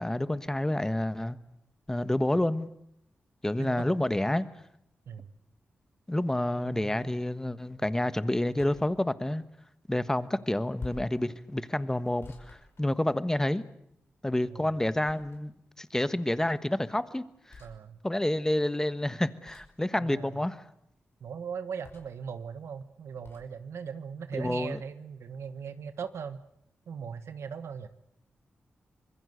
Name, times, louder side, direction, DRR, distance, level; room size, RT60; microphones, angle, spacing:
voice 1, 0.0-1.4 1.9-2.7 3.4-4.5 6.1-9.4 9.9-13.6 14.2-17.2 17.5-17.6 18.0-20.6 24.3-24.8, left 1 dB, 10° left, 13 dB, 1.3 m, -29 dB
voice 2, 6.6-7.2 14.5-14.7 17.6-18.0 20.0-20.5 21.2-26.4 26.9-27.9, right 6 dB, 85° right, 11 dB, 1.3 m, -39 dB
sound 1, 8.6-8.9 10.8-11.2 12.2-13.4 15.0-15.6 17.5-17.8 19.4-19.8 21.8-22.2 23.2-23.5, left 3 dB, 65° left, 5.3 m, -47 dB
25.5 x 22.0 x 8.0 m, 0.74 s
cardioid pair, 85°, 4 cm